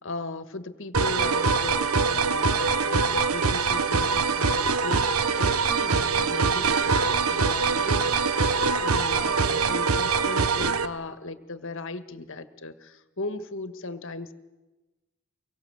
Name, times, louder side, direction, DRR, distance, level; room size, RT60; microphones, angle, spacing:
voice 1, 0.0-14.3, left 2 dB, 65° left, 10 dB, 1.7 m, -37 dB
sound 1, 0.9-10.9, right 4 dB, 85° right, 1.1 m, -23 dB
24.5 x 23.0 x 8.0 m, 1.1 s
head